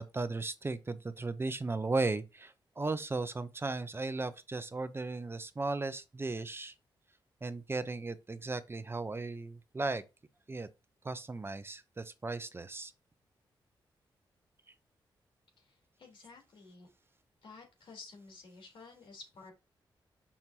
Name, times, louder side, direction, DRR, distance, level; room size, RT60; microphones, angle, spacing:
voice 1, 0.0-6.7 7.4-10.0 10.5-10.7 11.0-12.9, right 3 dB, 25° right, 0.7 m, -36 dB
voice 2, 15.6-16.9 17.4-19.5, left 4 dB, 75° left, 3.5 m, -52 dB
7.1 x 6.0 x 2.8 m
cardioid pair, 80°, 9 cm